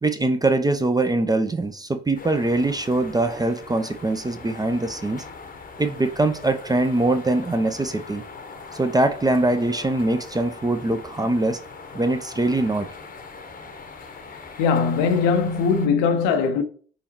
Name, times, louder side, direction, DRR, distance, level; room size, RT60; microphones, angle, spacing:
voice 1, 0.0-5.2 5.8-8.2 8.7-11.6 11.9-12.9, right 2 dB, 15° right, 0.4 m, -22 dB
sound 1, 2.1-15.9, left 4 dB, 25° left, 0.8 m, -41 dB
voice 2, 14.6-16.6, left 5 dB, 70° left, 0.6 m, -20 dB
4.2 x 3.8 x 2.9 m
hypercardioid pair, 55°, 31 cm